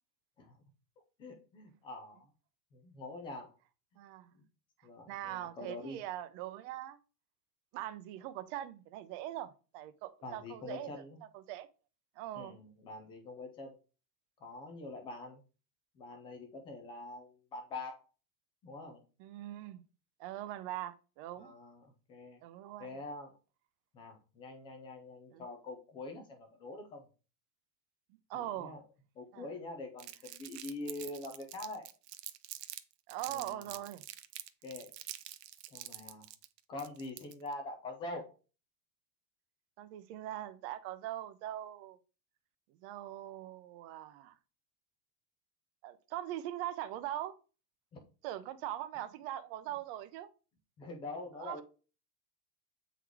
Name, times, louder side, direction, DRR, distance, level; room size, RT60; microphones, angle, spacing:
voice 1, 1.2-2.3 2.7-3.5 4.3-4.4 4.8-6.0 10.2-11.2 12.3-13.8 14.4-15.4 15.9-18.0 18.6-19.0 21.4-22.4 22.8-23.3 23.9-27.0 28.3-28.8 29.2-31.9 33.3-33.7 34.6-34.9 35.7-36.3 36.7-38.4 47.9-48.0 50.8-51.6, left 2 dB, 10° left, 0.3 m, -45 dB
voice 2, 4.0-4.3 5.1-7.0 7.7-11.0 11.3-11.7 12.2-12.6 19.2-19.8 20.2-21.5 22.4-23.0 25.3-25.4 28.3-28.8 29.3-29.4 33.1-34.0 39.8-42.0 42.8-44.3 45.8-47.4 48.2-50.3 51.4-51.6, right 13 dB, 35° right, 0.6 m, -41 dB
Crumpling crinkling, 30.0-32.8 33.1-37.5, right 14 dB, 75° right, 0.9 m, -46 dB
8.1 x 4.0 x 4.6 m
supercardioid pair, 160°, 49 cm